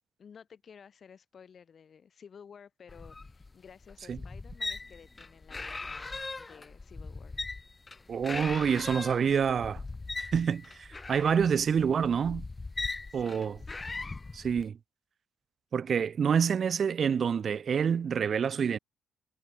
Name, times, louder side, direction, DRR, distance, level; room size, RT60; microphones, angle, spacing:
voice 1, 0.2-7.3 12.8-13.5, left 7 dB, 50° left, 6.8 m, -54 dB
sound 1, 2.9-14.7, left 3 dB, 25° left, 2.9 m, -40 dB
voice 2, 8.1-9.8 10.2-12.5 13.1-13.6 14.3-14.8 15.7-18.8, right 7 dB, 50° right, 2.1 m, -27 dB
cardioid pair, 90°, 0 cm